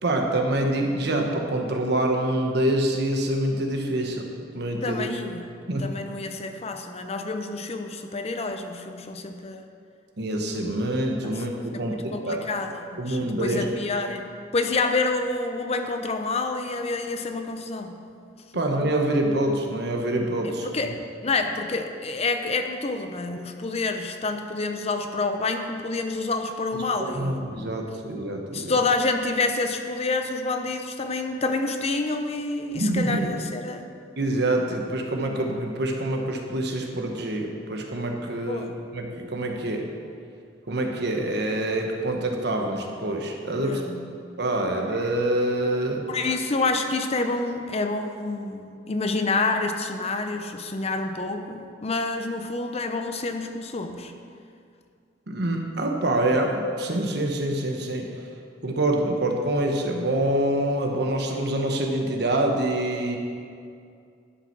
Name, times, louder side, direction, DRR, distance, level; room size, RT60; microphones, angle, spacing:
voice 1, 0.0-4.3 4.5-5.1 5.7-5.9 10.2-12.4 13.0-13.7 18.5-20.7 26.7-26.8 27.1-28.7 32.7-33.2 34.2-39.9 40.7-43.8 44.4-46.1 55.3-58.1 58.6-63.2, right 1 dB, 65° right, 2 dB, 1.2 m, -26 dB
voice 2, 4.8-9.6 11.2-11.4 11.7-14.3 14.5-18.0 20.4-20.9 21.2-27.5 28.5-33.9 38.5-38.7 43.5-44.1 46.1-54.1, left 3 dB, 35° left, 6 dB, 0.6 m, -28 dB
11.5 x 5.8 x 6.0 m, 2.3 s
head